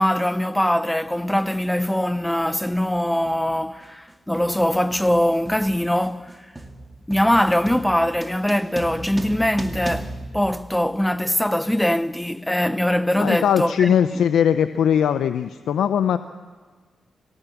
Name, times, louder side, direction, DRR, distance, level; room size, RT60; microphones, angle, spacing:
voice 1, 0.0-6.4 7.1-14.3, equal, 5° left, 0.9 m, -22 dB
sound 1, 1.1-1.2 2.2-2.4 2.7-11.2, right 2 dB, 20° right, 2.4 m, -37 dB
voice 2, 13.2-16.2, left 8 dB, 90° left, 0.6 m, -20 dB
25.5 x 18.0 x 7.2 m
cardioid pair, 65°, 0 cm